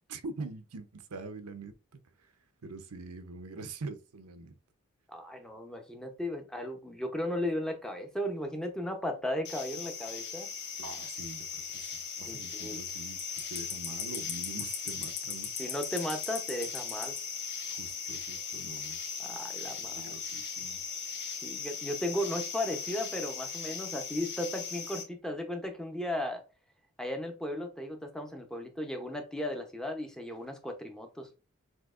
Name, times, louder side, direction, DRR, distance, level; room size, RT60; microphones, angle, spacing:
voice 1, 0.1-2.0 2.6-4.5 10.8-15.5 17.7-19.0 19.8-20.8, right 3 dB, 85° right, 0.7 m, -44 dB
voice 2, 5.1-10.5 12.3-12.8 15.6-17.2 19.2-20.1 21.4-26.4 27.0-31.3, left 1 dB, 5° left, 0.6 m, -36 dB
sound 1, 9.4-25.0, left 6 dB, 50° left, 1.3 m, -38 dB
6.2 x 2.8 x 2.4 m
head